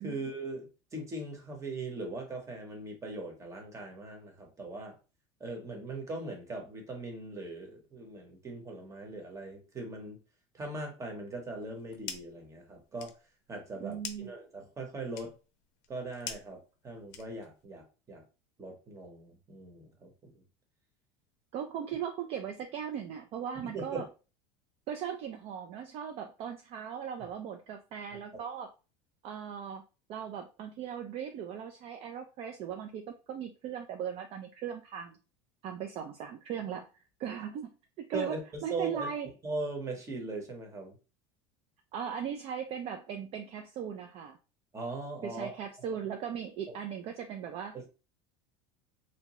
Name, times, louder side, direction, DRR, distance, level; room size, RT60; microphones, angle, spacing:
voice 1, 0.0-5.0 5.4-10.2 10.5-13.1 13.5-15.3 15.9-18.2 18.6-20.3 23.6-24.1 28.3-28.4 38.1-38.4 38.7-39.1 39.4-41.0 44.7-45.5 46.7-46.8 47.7-47.9, right 2 dB, 20° right, 0.9 m, -40 dB
sound 1, 11.6-12.4 12.8-17.7, left 8 dB, 60° left, 0.5 m, -46 dB
voice 2, 13.8-14.3 21.5-24.1 24.9-28.7 29.2-29.8 30.1-35.2 35.6-36.9 37.2-38.4 38.6-39.3 41.9-44.4 45.2-47.7, right 8 dB, 45° right, 0.4 m, -38 dB
2.7 x 2.1 x 3.0 m
supercardioid pair, 125°, 14 cm